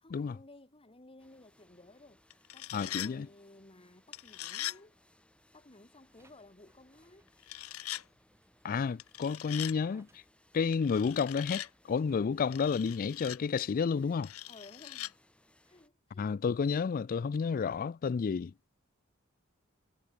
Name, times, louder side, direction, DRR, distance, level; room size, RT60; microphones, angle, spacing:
voice 1, 0.0-5.0 5.5-7.3 14.5-15.2 15.6-16.4, left 2 dB, 25° left, 2.1 m, -56 dB
sound 1, 1.2-15.9, left 1 dB, 5° left, 4.0 m, -67 dB
sound 2, 2.3-3.1 4.1-4.8 7.4-8.0 9.0-9.8 10.7-11.7 12.5-13.4 14.2-15.1, left 13 dB, 90° left, 1.1 m, -41 dB
voice 2, 2.7-3.3 8.6-10.2 10.5-14.3 16.2-18.5, left 5 dB, 40° left, 0.3 m, -31 dB
sound 3, 6.0-12.2, right 2 dB, 15° right, 2.7 m, -66 dB
head